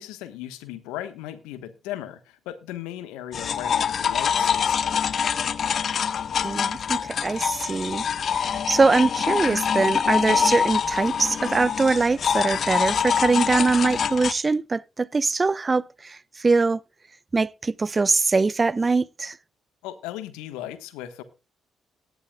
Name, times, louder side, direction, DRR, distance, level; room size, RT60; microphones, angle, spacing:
voice 1, 0.0-5.1 19.8-21.2, left 12 dB, 75° left, 1.2 m, -37 dB
texture small metal grid, 3.3-14.3, left 7 dB, 55° left, 0.6 m, -25 dB
voice 2, 6.4-16.8 17.3-19.4, right 3 dB, 30° right, 0.5 m, -23 dB
18.5 x 10.5 x 2.3 m
hypercardioid pair, 45°, 0 cm